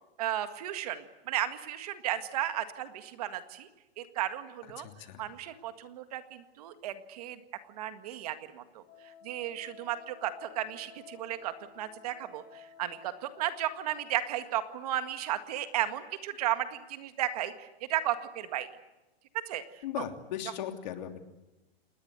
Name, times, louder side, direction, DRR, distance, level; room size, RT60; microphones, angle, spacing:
voice 1, 0.2-3.7 4.0-4.9 5.2-7.4 7.7-8.8 9.2-18.7 19.5-19.6, right 12 dB, 40° right, 9 dB, 1.8 m, -34 dB
voice 2, 4.8-5.3 19.8-21.3, left 10 dB, 45° left, 6 dB, 3.1 m, -38 dB
Wind instrument woodwind instrument, 8.9-14.1, left 8 dB, 25° left, 7.7 m, -53 dB
29.0 x 20.5 x 8.2 m, 1.0 s
hypercardioid pair, 175°, 31 cm